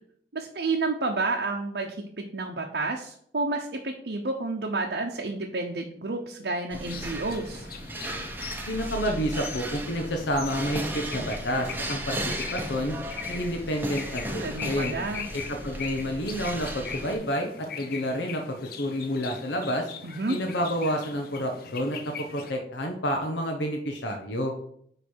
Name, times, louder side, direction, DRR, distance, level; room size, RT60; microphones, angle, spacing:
voice 1, 0.3-7.7 14.4-15.2 20.0-20.4, right 3 dB, 65° right, 0 dB, 0.7 m, -30 dB
sound 1, 6.7-17.2, right 1 dB, 10° right, 0.7 m, -35 dB
sound 2, 6.9-22.5, left 6 dB, 55° left, 0.6 m, -41 dB
voice 2, 8.7-13.0 13.3-14.9 15.3-19.9 20.3-24.5, equal, 85° left, 3 dB, 0.9 m, -29 dB
9.3 x 3.3 x 4.4 m, 0.66 s
head